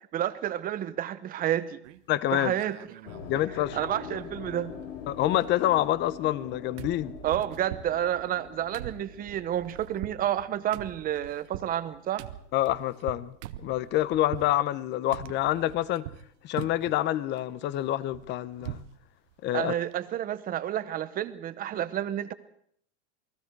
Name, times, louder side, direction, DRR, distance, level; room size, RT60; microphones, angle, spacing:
voice 1, 0.1-1.8 2.3-2.8 3.7-4.7 7.2-12.3 19.5-22.3, right 11 dB, 25° right, 1.0 m, -30 dB
sound 1, 1.8-2.2 2.6-3.4 3.7-3.8 4.0-4.9 5.1-6.5 6.8-14.5 15.1-16.3 16.6-17.0 17.4-19.0 19.3-19.4 19.7-19.9, right 13 dB, 70° right, 1.2 m, -43 dB
voice 2, 2.1-2.5 3.3-3.8 5.1-7.1 12.5-13.3 13.6-16.0 16.4-18.8 19.4-19.7, left 14 dB, 30° left, 0.8 m, -27 dB
sound 2, 3.0-13.2 13.4-15.1, left 7 dB, 90° left, 5.3 m, -45 dB
28.5 x 20.0 x 4.7 m
supercardioid pair, 155°, 37 cm